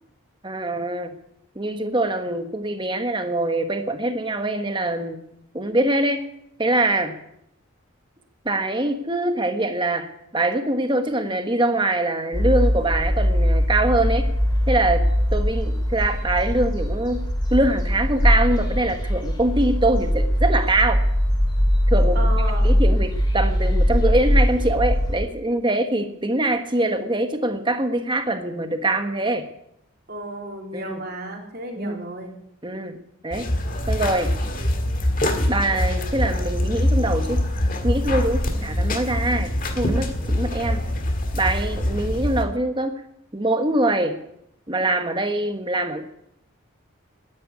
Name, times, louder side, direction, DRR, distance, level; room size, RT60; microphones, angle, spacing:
voice 1, 0.4-1.1 1.5-5.2 5.5-6.2 6.6-7.1 8.4-14.3 14.7-15.0 15.3-17.2 17.5-21.0 21.9-22.3 22.6-29.5 30.7-31.0 31.8-32.0 32.6-33.5 33.9-34.3 35.5-37.4 37.8-40.8 41.3-43.0 43.3-44.2 44.7-46.1, right 2 dB, 20° right, 7 dB, 1.3 m, -23 dB
sound 1, 12.3-25.2, equal, 20° left, 3.2 m, -21 dB
voice 2, 22.1-22.8 30.1-32.4, right 1 dB, 45° right, 1 dB, 3.5 m, -33 dB
sound 2, 33.3-42.4, left 1 dB, 40° left, 1.8 m, -24 dB
12.0 x 10.5 x 9.7 m, 0.80 s
head